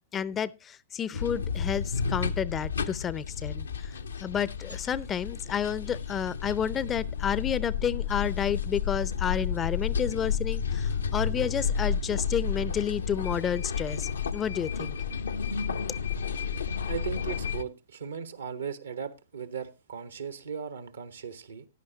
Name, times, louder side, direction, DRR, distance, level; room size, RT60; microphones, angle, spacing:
voice 1, 0.1-15.0, left 8 dB, 25° left, 0.5 m, -31 dB
sound 1, 1.1-17.6, left 6 dB, 80° left, 0.7 m, -31 dB
voice 2, 16.9-21.7, right 7 dB, 75° right, 1.3 m, -37 dB
14.5 x 10.5 x 2.8 m
figure-of-eight pair, 105°, 0 cm